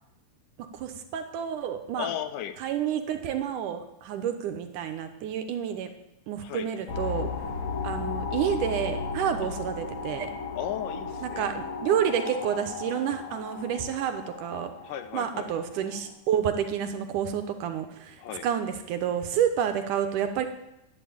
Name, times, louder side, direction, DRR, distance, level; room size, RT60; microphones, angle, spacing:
voice 1, 0.7-2.1 2.6-5.9 6.3-7.3 7.8-10.3 11.2-14.7 15.1-18.2 18.4-20.5, right 9 dB, 75° right, 7 dB, 2.4 m, -29 dB
voice 2, 2.0-2.6 6.4-6.7 9.4-9.6 10.5-11.5 14.8-15.5 18.2-18.5, left 11 dB, 75° left, 10 dB, 2.2 m, -35 dB
sound 1, 6.9-16.1, left 4 dB, 60° left, 2.8 m, -35 dB
11.5 x 9.2 x 8.6 m, 0.87 s
omnidirectional pair, 4.0 m